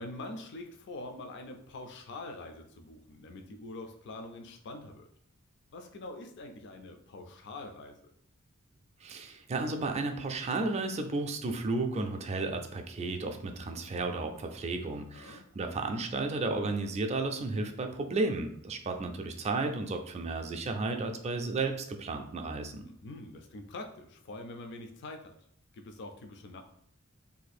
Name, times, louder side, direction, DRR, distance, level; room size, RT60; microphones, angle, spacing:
voice 1, 0.0-5.1 5.7-8.0 15.1-15.5 22.9-25.4 25.7-26.6, left 2 dB, 55° left, 5 dB, 0.4 m, -44 dB
voice 2, 9.0-22.9, right 3 dB, 30° right, 5 dB, 0.4 m, -33 dB
2.7 x 2.4 x 4.1 m, 0.68 s
head